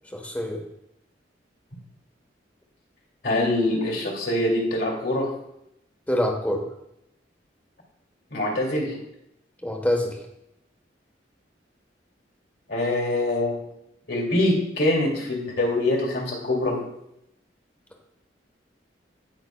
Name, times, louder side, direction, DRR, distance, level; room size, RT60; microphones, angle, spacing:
voice 1, 0.1-0.6 6.1-6.6 9.6-10.2, left 1 dB, 10° left, 2 dB, 1.3 m, -25 dB
voice 2, 3.2-5.3 8.3-8.9 12.7-13.6 14.1-16.8, left 1 dB, 65° left, -3 dB, 2.5 m, -24 dB
17.0 x 5.7 x 2.3 m, 0.81 s
head